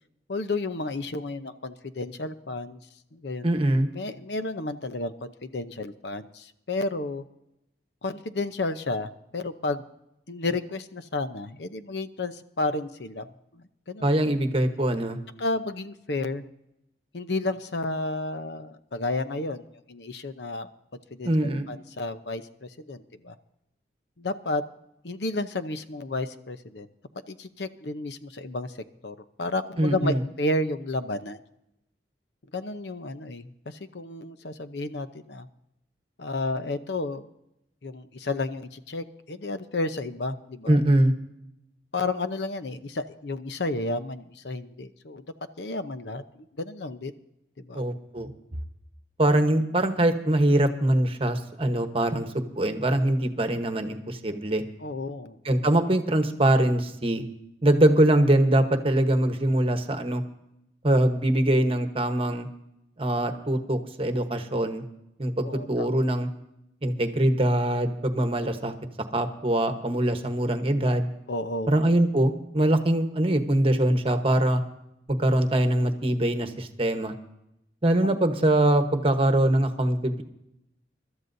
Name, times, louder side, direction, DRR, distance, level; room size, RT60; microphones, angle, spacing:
voice 1, 0.3-2.8 3.1-3.5 3.9-7.2 8.0-9.8 10.3-13.3 13.5-14.2 15.4-16.4 17.1-20.7 21.1-23.3 24.2-24.6 25.0-26.9 27.3-28.8 29.0-31.4 32.5-35.5 36.2-37.3 37.8-40.8 41.9-45.3 45.6-47.1 47.6-47.8 54.8-55.4 65.4-65.9 71.3-71.7 78.0-78.2, left 2 dB, 75° left, 10 dB, 0.8 m, -32 dB
voice 2, 3.4-3.9 14.0-15.2 21.2-21.7 29.8-30.2 40.7-41.1 47.7-48.3 49.2-54.6 55.4-57.2 57.6-60.2 60.8-62.5 63.0-64.8 65.2-66.3 66.8-68.7 69.1-71.1 71.7-74.6 75.1-77.1 77.8-80.2, right 1 dB, 30° right, 7 dB, 1.1 m, -23 dB
24.5 x 13.0 x 2.7 m, 0.83 s
head